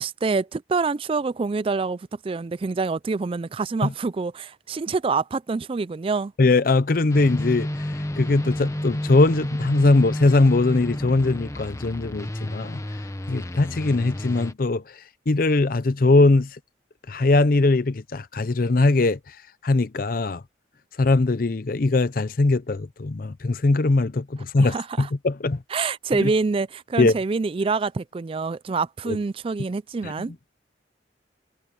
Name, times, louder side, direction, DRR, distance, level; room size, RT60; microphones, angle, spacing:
voice 1, 0.0-6.3 24.6-25.1 25.7-30.3, right 4 dB, 30° right, 0.3 m, -26 dB
voice 2, 6.4-7.7 8.2-12.8 13.3-16.6 17.1-19.4 19.6-20.4 21.0-25.6 26.1-26.3 27.0-27.1 29.1-29.2 30.0-30.1, left 2 dB, 50° left, 0.6 m, -21 dB
sound 1, 7.1-14.5, left 1 dB, 15° left, 0.8 m, -30 dB
head